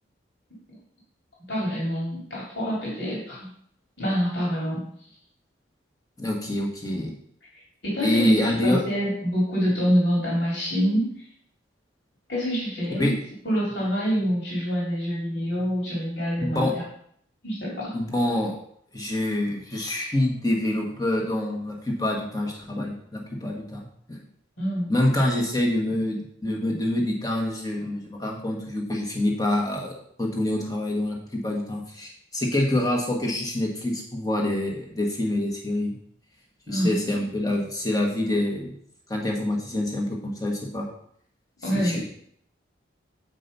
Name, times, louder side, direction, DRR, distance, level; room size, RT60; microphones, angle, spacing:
voice 1, 1.5-3.5 4.0-4.9 7.8-8.3 8.6-11.2 12.3-13.1 13.4-16.7 17.4-17.9 24.6-24.9 36.7-37.3 41.6-42.0, equal, 65° left, -6 dB, 3.4 m, -26 dB
voice 2, 6.2-7.1 8.0-8.8 12.9-13.1 16.4-16.7 17.9-18.6 18.9-24.2 24.9-36.0 36.7-38.7 39.1-40.9 41.7-42.0, left 1 dB, 20° left, -1 dB, 1.5 m, -26 dB
8.1 x 5.3 x 5.5 m, 0.66 s
head